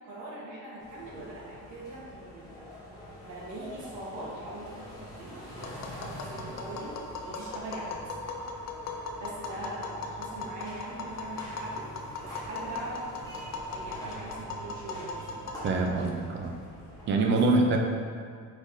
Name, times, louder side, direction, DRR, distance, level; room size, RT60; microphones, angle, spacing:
voice 1, 0.0-2.5 3.3-7.0 7.2-8.1 9.2-11.9 12.2-13.0 13.7-15.5 17.3-17.4, right 1 dB, 60° right, -6 dB, 1.3 m, -42 dB
sound 1, 0.8-17.1, equal, 10° left, 0.8 m, -45 dB
Tap, 5.6-16.1, left 3 dB, 50° left, 0.5 m, -39 dB
voice 2, 15.6-16.5 17.1-17.8, right 3 dB, 35° right, 2 dB, 0.4 m, -25 dB
5.0 x 3.7 x 2.7 m, 2.1 s
cardioid pair, 180°, 35 cm